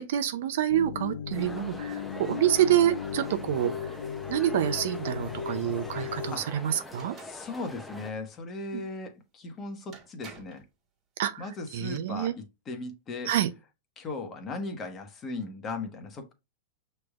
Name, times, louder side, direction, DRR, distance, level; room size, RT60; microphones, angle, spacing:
voice 1, 0.0-3.7 4.3-7.2 8.7-8.8 11.2-11.4 11.7-12.3 13.3-13.5, right 11 dB, 70° right, 0.5 m, -27 dB
sound 1, 0.7-6.4, left 8 dB, 75° left, 0.5 m, -36 dB
sound 2, 1.3-8.1, left 1 dB, 5° left, 0.7 m, -44 dB
sound 3, 6.9-7.4 9.4-9.5 9.9-10.7 11.6-12.0, right 5 dB, 30° right, 1.8 m, -49 dB
voice 2, 7.2-10.6 11.4-13.3 14.0-16.3, left 3 dB, 25° left, 1.1 m, -37 dB
5.9 x 3.3 x 2.4 m
hypercardioid pair, 130°, 0 cm